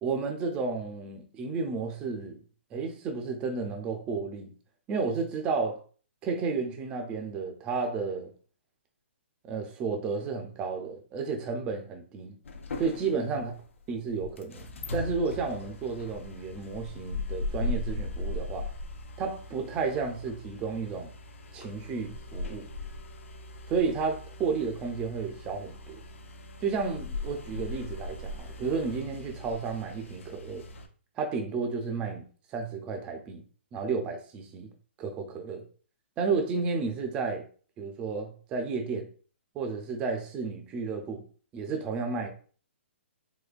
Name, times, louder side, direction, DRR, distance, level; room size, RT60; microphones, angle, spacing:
voice 1, 0.0-2.4 2.7-4.5 4.9-5.8 6.2-8.3 9.4-12.3 12.8-13.5 13.9-14.7 14.9-18.7 19.2-21.1 21.5-22.7 23.7-26.0 26.6-30.7 31.2-32.2 32.5-33.4 33.7-34.7 35.0-35.6 36.2-37.4 37.8-39.1 39.5-41.3 41.5-42.3, right 4 dB, 15° right, 0.4 m, -32 dB
sound 1, 12.5-30.9, left 2 dB, 85° left, 0.6 m, -39 dB
3.9 x 2.6 x 2.4 m
hypercardioid pair, 165°, 7 cm